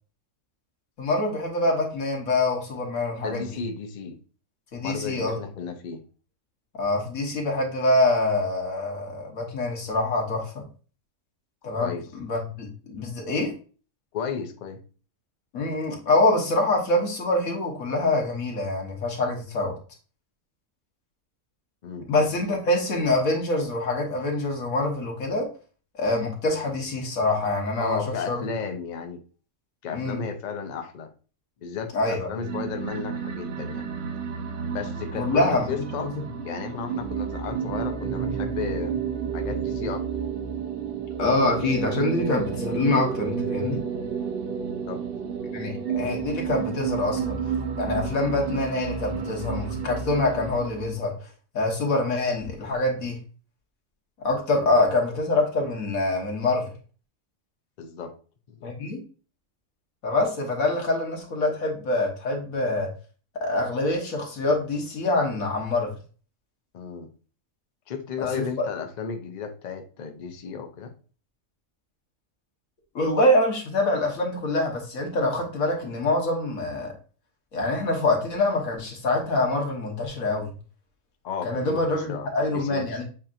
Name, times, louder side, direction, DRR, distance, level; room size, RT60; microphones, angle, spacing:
voice 1, 1.0-3.5 4.7-5.4 6.8-10.6 11.6-13.5 15.5-19.8 22.1-25.5 26.0-28.0 28.3-28.5 29.9-30.2 31.9-32.3 35.2-35.7 36.0-36.1 41.2-43.8 45.5-47.4 47.8-51.1 51.5-53.2 54.2-56.7 58.6-59.0 60.0-62.9 63.4-65.9 68.4-68.5 73.0-76.9 77.5-80.5 81.4-83.0, left 2 dB, 85° left, 1.7 m, -25 dB
voice 2, 3.2-4.2 4.8-6.0 11.8-12.0 14.1-14.8 21.8-22.1 27.8-29.2 29.8-31.1 31.6-33.9 34.7-36.1 36.4-39.0 39.3-40.1 44.9-45.0 54.6-54.8 57.8-58.2 58.5-58.7 66.7-67.1 67.9-70.9 81.2-82.3 82.5-83.0, left 6 dB, 50° left, 0.6 m, -34 dB
sound 1, 32.4-51.0, right 6 dB, 55° right, 0.7 m, -31 dB
7.4 x 2.8 x 2.5 m
omnidirectional pair, 1.4 m